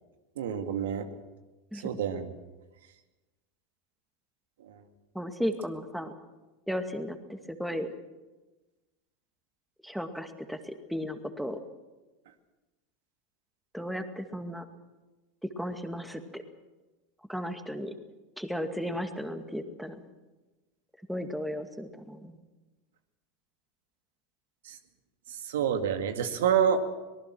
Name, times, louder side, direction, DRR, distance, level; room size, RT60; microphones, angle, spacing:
voice 1, 0.4-1.1 1.7-2.3 4.6-4.7 24.7-24.8 25.3-26.8, right 8 dB, 75° right, 8 dB, 2.1 m, -28 dB
voice 2, 5.1-6.1 6.7-7.9 9.8-11.6 13.7-14.7 15.4-16.4 17.3-17.9 18.4-20.0 21.1-22.4, equal, ahead, 7 dB, 2.2 m, -35 dB
24.5 x 19.0 x 6.3 m, 1.2 s
hypercardioid pair, 90°, 0 cm